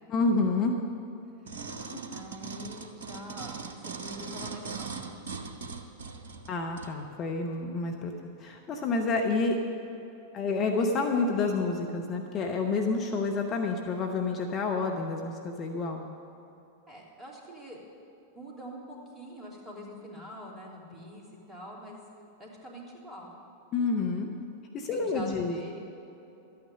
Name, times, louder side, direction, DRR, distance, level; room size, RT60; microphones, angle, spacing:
voice 1, 0.1-0.8 6.5-8.1 8.4-9.6 10.3-16.0 23.7-24.3 24.7-25.6, left 3 dB, 30° left, 2 dB, 1.0 m, -29 dB
sound 1, 1.5-6.9 7.5-7.6, right 5 dB, 65° right, 0.9 m, -40 dB
voice 2, 2.1-5.2 16.9-17.8 18.3-22.0 22.4-23.4 24.9-25.9, equal, 20° right, -3 dB, 3.0 m, -45 dB
13.0 x 9.5 x 6.7 m, 3.0 s
figure-of-eight pair, 90°, 0 cm